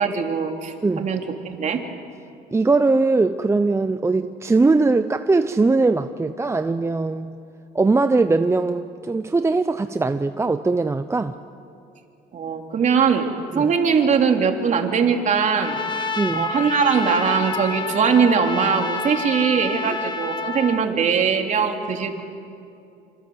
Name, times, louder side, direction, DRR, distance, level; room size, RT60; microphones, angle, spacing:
voice 1, 0.0-1.8 12.3-13.3 13.5-16.0 16.3-22.2, right 6 dB, 45° right, 3 dB, 3.2 m, -21 dB
voice 2, 2.5-7.4 7.7-11.3 13.5-13.7 16.2-16.5 19.9-20.0, right 3 dB, 15° right, 9 dB, 0.8 m, -20 dB
Trumpet, 15.6-20.8, left 3 dB, 25° left, 1.7 m, -28 dB
28.0 x 26.5 x 8.0 m, 2.7 s
cardioid pair, 110°, 17 cm